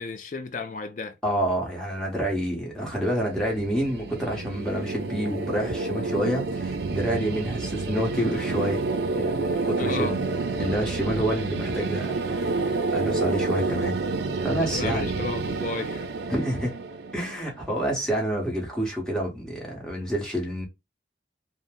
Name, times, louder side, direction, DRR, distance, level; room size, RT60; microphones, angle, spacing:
voice 1, 0.0-1.2 9.8-10.2 14.6-16.1, left 4 dB, 45° left, 0.4 m, -33 dB
voice 2, 1.2-8.8 9.1-10.2 10.6-13.9 14.4-15.1 16.3-16.7 17.1-20.7, right 1 dB, 5° left, 1.0 m, -28 dB
sound 1, 2.8-17.8, right 3 dB, 75° right, 0.4 m, -29 dB
2.7 x 2.0 x 3.3 m
head